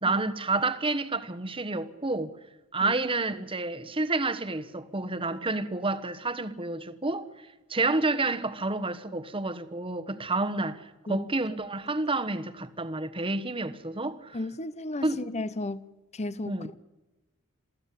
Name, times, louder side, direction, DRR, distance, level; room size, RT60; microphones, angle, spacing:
voice 1, 0.0-2.3 2.7-7.3 7.7-14.4 15.0-15.2 16.5-16.7, right 2 dB, 25° right, 1.3 m, -29 dB
voice 2, 14.3-15.8 16.1-16.8, left 2 dB, 30° left, 0.8 m, -34 dB
27.5 x 16.5 x 8.5 m
head